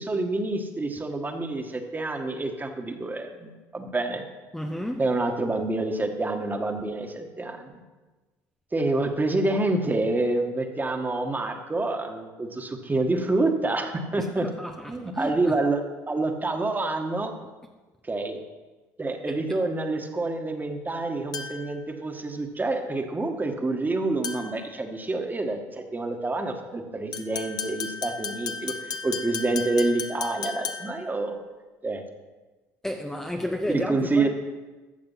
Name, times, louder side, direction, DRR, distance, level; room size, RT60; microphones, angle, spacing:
voice 1, 0.0-4.2 5.0-7.8 8.7-14.5 14.9-17.3 18.0-18.4 19.0-31.4 31.8-32.0 33.7-34.3, right 2 dB, 20° right, 1.7 m, -27 dB
voice 2, 4.5-5.0 14.6-15.3 32.8-34.3, left 1 dB, 5° left, 0.8 m, -31 dB
sound 1, 21.3-21.8 24.2-24.6 27.1-31.1, left 6 dB, 50° left, 1.0 m, -34 dB
14.0 x 6.6 x 5.8 m
supercardioid pair, 70°, 8 cm